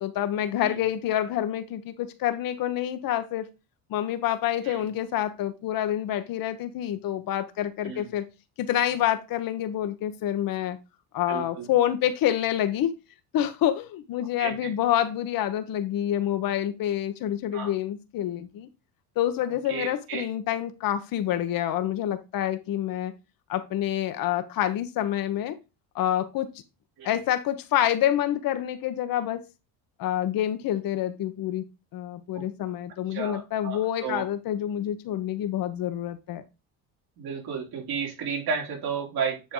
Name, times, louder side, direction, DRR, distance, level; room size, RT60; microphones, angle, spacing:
voice 1, 0.0-3.5 3.9-8.2 8.6-10.8 11.1-12.9 13.3-18.7 19.2-23.1 23.5-25.6 25.9-26.5 27.0-29.5 30.0-31.7 31.9-36.4, left 11 dB, 60° left, 1.1 m, -27 dB
voice 2, 11.3-11.7 14.4-14.7 17.5-17.7 19.7-20.3 27.0-27.2 32.3-32.4 33.1-34.2 37.2-39.5, right 6 dB, 65° right, 3.4 m, -33 dB
9.8 x 3.6 x 3.8 m
cardioid pair, 110°, 39 cm